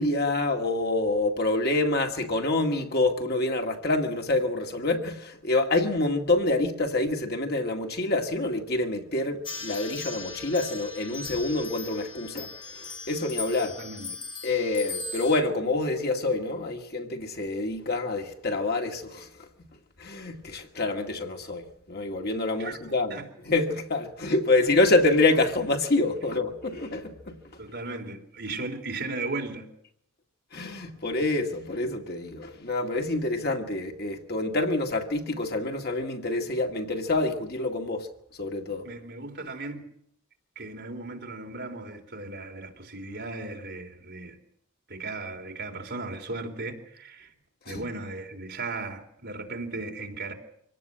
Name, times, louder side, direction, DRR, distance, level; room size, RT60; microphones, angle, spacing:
voice 1, 0.0-13.8 14.4-19.3 20.0-23.2 23.5-27.4 30.5-38.1 38.4-38.9 47.7-47.8, left 2 dB, 45° left, 2.1 m, -27 dB
sound 1, 9.4-15.4, left 3 dB, 20° left, 2.3 m, -39 dB
voice 2, 13.8-14.2 22.5-22.8 23.1-23.3 27.6-29.7 38.8-39.9 40.6-44.4 44.9-47.3 47.7-50.3, right 3 dB, 50° right, 3.8 m, -36 dB
25.5 x 18.0 x 7.7 m
head